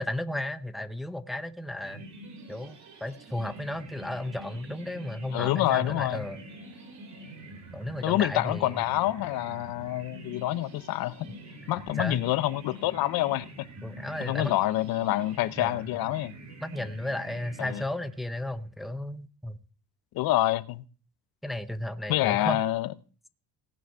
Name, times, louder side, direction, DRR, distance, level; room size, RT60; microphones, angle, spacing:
voice 1, 0.0-2.0 2.5-6.4 7.7-8.8 12.0-12.2 13.8-14.5 15.6-15.8 16.6-19.6 21.4-22.6, left 1 dB, ahead, 0.6 m, -34 dB
sound 1, 1.8-18.4, right 1 dB, 50° right, 2.9 m, -46 dB
voice 2, 5.3-6.2 8.0-11.3 11.7-13.7 14.2-16.3 17.6-17.8 20.1-20.8 22.1-22.9, left 16 dB, 80° left, 0.7 m, -27 dB
17.5 x 6.1 x 5.5 m
cardioid pair, 135°, 35 cm